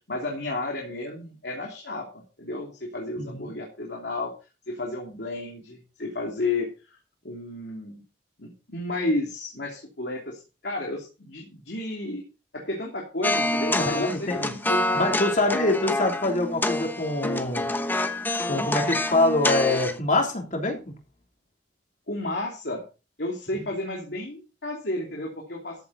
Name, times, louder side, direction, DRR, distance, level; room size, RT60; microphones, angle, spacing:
voice 1, 0.1-4.3 4.7-7.0 7.2-8.0 8.4-12.2 12.5-15.5 22.1-22.8 23.2-25.8, left 2 dB, 70° left, 0 dB, 2.9 m, -32 dB
voice 2, 3.2-3.5 13.7-14.5 14.9-17.7 18.5-20.9, left 2 dB, 45° left, 2 dB, 3.3 m, -25 dB
sound 1, 13.2-20.0, left 1 dB, 10° left, 1.0 m, -27 dB
14.0 x 7.9 x 4.1 m, 0.32 s
head